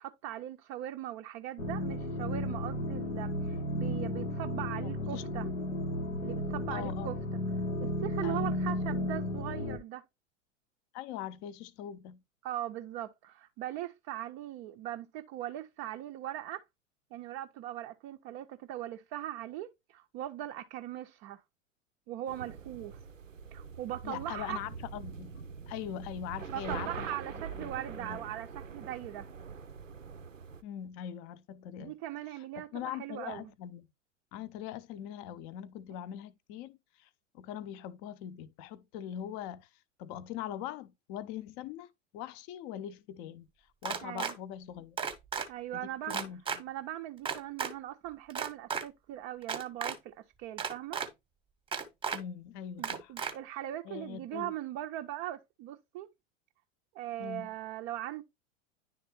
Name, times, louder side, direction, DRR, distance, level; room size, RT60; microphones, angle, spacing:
voice 1, 0.0-5.5 6.2-7.2 7.8-10.1 12.4-16.6 17.1-21.4 22.1-23.0 23.5-24.6 26.5-29.3 31.8-33.5 44.0-44.3 45.5-46.2 46.6-51.0 52.8-56.1 56.9-58.2, right 13 dB, 30° right, 0.5 m, -40 dB
sound 1, 1.6-9.8, left 1 dB, 85° left, 0.8 m, -34 dB
voice 2, 4.8-5.6 6.7-7.1 8.2-8.5 10.9-12.2 24.0-27.2 27.5-28.3 30.6-31.9 32.6-33.9 34.3-37.1 37.3-39.7 40.0-41.9 42.1-43.5 43.8-45.0 45.7-46.6 52.1-53.1 53.8-54.5 57.2-57.5, left 10 dB, 35° left, 0.6 m, -42 dB
sound 2, 22.3-30.6, right 6 dB, 85° right, 0.5 m, -44 dB
sound 3, 43.8-44.3 45.0-45.5 46.1-46.6 47.3-47.7 48.3-48.8 49.4-50.0 50.6-51.1 51.7-52.2 52.8-53.3, right 6 dB, 15° right, 0.9 m, -34 dB
10.5 x 3.5 x 3.1 m
figure-of-eight pair, 85°, 38 cm